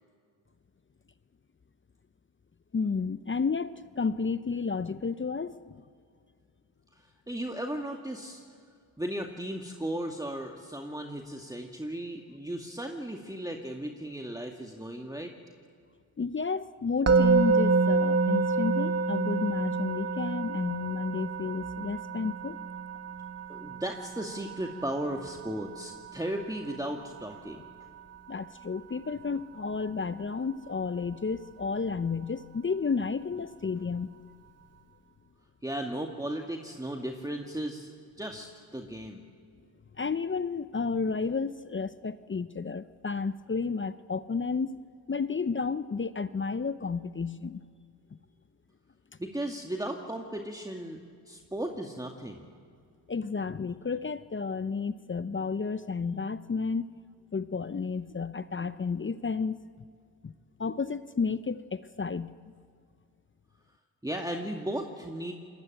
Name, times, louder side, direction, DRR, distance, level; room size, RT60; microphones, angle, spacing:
voice 1, 2.7-5.8 16.2-22.6 28.3-34.3 40.0-47.6 53.1-57.0 57.3-59.6 60.2-60.3 60.6-62.3, left 5 dB, 25° left, 14 dB, 0.8 m, -32 dB
voice 2, 7.0-8.4 9.0-15.3 23.5-27.6 35.6-37.9 38.2-39.3 49.2-51.0 51.3-52.5 64.0-65.3, right 1 dB, 5° right, 2 dB, 2.1 m, -36 dB
Musical instrument, 17.1-28.2, right 4 dB, 30° right, 2.2 m, -29 dB
27.5 x 21.0 x 9.1 m, 2.2 s
supercardioid pair, 55°, 50 cm